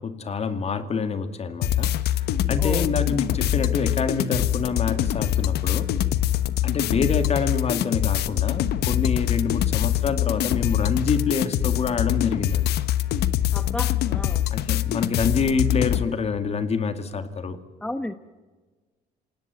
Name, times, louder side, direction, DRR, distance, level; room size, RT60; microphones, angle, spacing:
voice 1, 0.0-5.9 6.6-12.7 14.5-17.6, left 5 dB, 40° left, 10 dB, 2.3 m, -27 dB
sound 1, 1.6-16.1, left 12 dB, 75° left, 1.1 m, -24 dB
voice 2, 2.6-2.9 13.5-14.4 17.8-18.1, left 1 dB, 5° left, 10 dB, 1.1 m, -32 dB
27.5 x 18.5 x 9.5 m, 1.3 s
cardioid pair, 110°, 17 cm